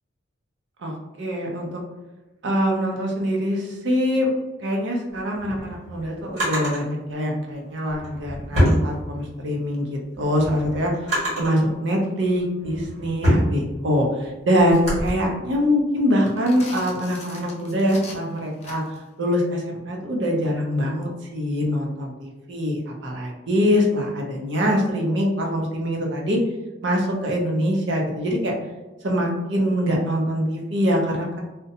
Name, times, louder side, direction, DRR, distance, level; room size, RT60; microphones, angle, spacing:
voice 1, 0.8-1.8 2.4-4.3 4.6-10.9 11.4-18.8 19.2-26.4 26.8-28.5 29.0-31.4, equal, 70° right, 0 dB, 0.5 m, -23 dB
Drawer open or close, 5.2-6.8 7.8-9.5 9.9-11.6 12.3-15.1, equal, 40° right, 1.4 m, -25 dB
sound 1, 16.2-19.1, left 3 dB, 35° left, 0.4 m, -41 dB
2.6 x 2.1 x 2.6 m, 1.1 s
head